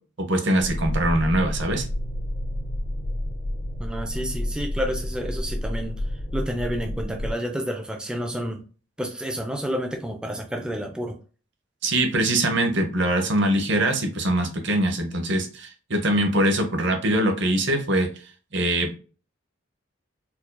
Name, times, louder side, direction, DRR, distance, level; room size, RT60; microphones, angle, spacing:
voice 1, 0.2-1.9 11.8-18.1 18.5-19.0, right 1 dB, 55° right, 5 dB, 0.8 m, -23 dB
sound 1, 0.6-7.3, left 1 dB, 40° left, 1.2 m, -30 dB
voice 2, 3.8-6.0 6.3-8.6 9.0-11.2, equal, 5° right, 3 dB, 0.4 m, -30 dB
4.4 x 2.7 x 2.2 m, 0.36 s
head